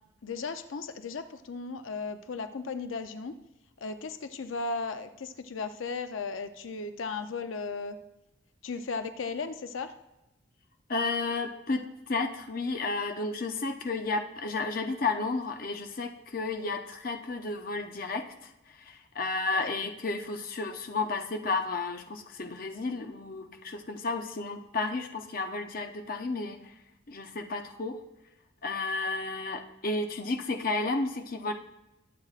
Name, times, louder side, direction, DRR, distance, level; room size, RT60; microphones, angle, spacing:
voice 1, 0.2-3.3 3.8-8.0 8.6-9.9 19.5-19.7, left 4 dB, 80° left, 9 dB, 0.6 m, -36 dB
voice 2, 10.9-18.3 18.8-26.6 27.1-28.0 28.6-31.5, left 3 dB, 45° left, 6 dB, 0.7 m, -32 dB
21.0 x 7.6 x 2.5 m, 0.95 s
head